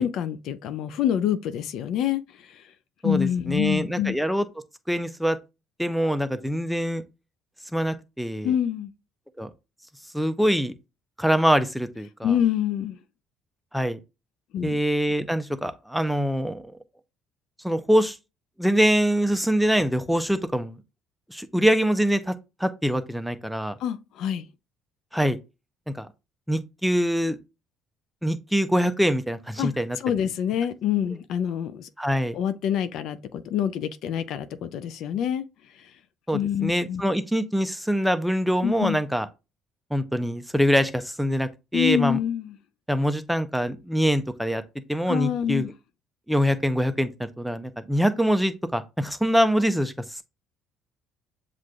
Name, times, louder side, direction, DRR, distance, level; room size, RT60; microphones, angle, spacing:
voice 1, 0.0-2.6 3.0-4.2 8.4-8.9 12.2-13.0 14.5-14.8 23.8-24.5 29.6-29.7 30.0-31.9 32.3-35.4 35.8-35.9 36.3-37.0 38.6-39.0 41.7-42.5 45.1-45.7, left 9 dB, 65° left, 0.3 m, -26 dB
voice 2, 3.0-4.5 4.9-5.4 5.8-7.0 7.7-8.5 9.4-9.5 10.1-10.7 11.2-12.3 13.7-14.0 14.6-16.6 17.6-18.2 18.6-20.8 21.3-22.3 22.6-23.8 25.1-25.4 25.9-26.1 26.5-27.4 28.2-30.0 32.0-32.4 36.3-39.3 39.9-42.2 42.9-44.6 44.9-45.7 46.3-47.1 47.4-50.2, equal, ahead, 0.5 m, -24 dB
7.3 x 2.4 x 2.2 m
hypercardioid pair, 60°, 0 cm